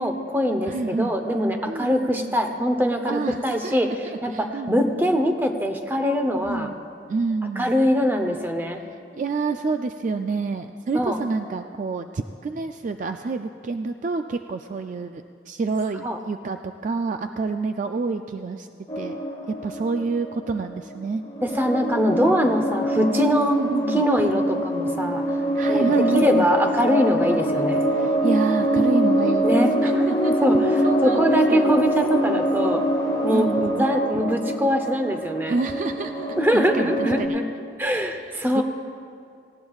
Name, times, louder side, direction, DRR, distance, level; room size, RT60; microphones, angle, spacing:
voice 1, 0.0-3.9 4.2-6.7 7.6-8.8 10.9-11.2 16.0-16.2 21.4-23.6 23.9-25.2 25.7-27.8 29.4-30.1 30.4-32.8 33.2-35.6 36.4-37.4 37.8-38.6, equal, 10° right, 5 dB, 0.7 m, -23 dB
voice 2, 0.7-1.1 1.7-2.4 3.1-4.9 6.5-6.8 7.1-7.7 9.1-18.7 19.0-19.2 19.5-21.2 23.5-24.0 25.5-26.5 27.2-27.4 27.9-30.5 30.8-31.7 33.3-33.8 35.5-36.3 36.5-37.4 38.0-38.6, right 4 dB, 40° right, 7 dB, 0.3 m, -28 dB
sound 1, 18.9-20.8 21.2-37.3, equal, 20° left, 1.2 m, -24 dB
18.5 x 16.5 x 2.4 m, 2.4 s
head